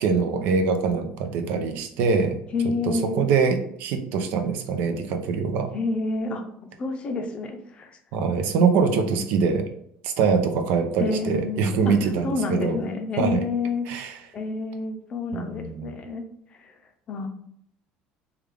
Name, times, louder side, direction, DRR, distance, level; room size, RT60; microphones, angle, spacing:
voice 1, 0.0-2.4 2.8-5.7 8.1-9.7 10.0-12.8 13.2-13.4 13.9-14.2 15.3-15.9, right 5 dB, 70° right, 6 dB, 0.5 m, -23 dB
voice 2, 2.5-3.3 5.7-6.4 6.8-8.0 8.5-9.3 11.0-12.0 12.2-13.8 14.3-16.2 16.6-16.7 17.1-17.3, left 3 dB, 35° left, 6 dB, 0.5 m, -29 dB
3.3 x 2.3 x 3.5 m, 0.70 s
cardioid pair, 135°, 3 cm